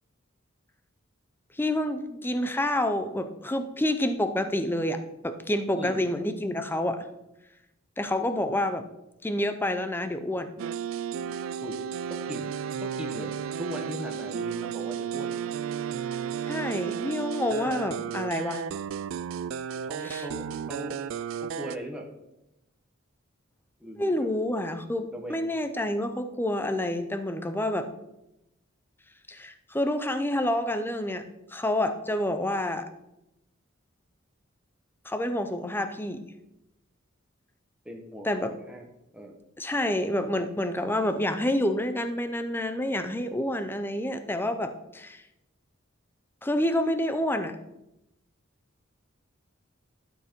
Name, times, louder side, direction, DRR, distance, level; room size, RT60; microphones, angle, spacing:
voice 1, 1.5-7.1 8.0-8.8 9.2-10.5 16.5-18.6 20.0-20.2 24.0-27.9 29.3-31.2 31.5-32.9 35.0-36.2 38.2-38.5 39.6-45.2 46.4-47.6, left 1 dB, 10° left, 9 dB, 0.5 m, -28 dB
voice 2, 5.7-6.1 11.6-11.8 12.1-12.6 12.8-15.4 17.6-17.7 19.8-21.0 21.4-22.1 23.8-24.3 25.1-25.6 37.8-38.3 38.7-38.8 39.1-39.3, equal, 5° right, 1 dB, 1.0 m, -39 dB
sound 1, 10.6-21.8, right 8 dB, 70° right, 0.3 m, -33 dB
12.0 x 4.8 x 4.4 m, 0.91 s
head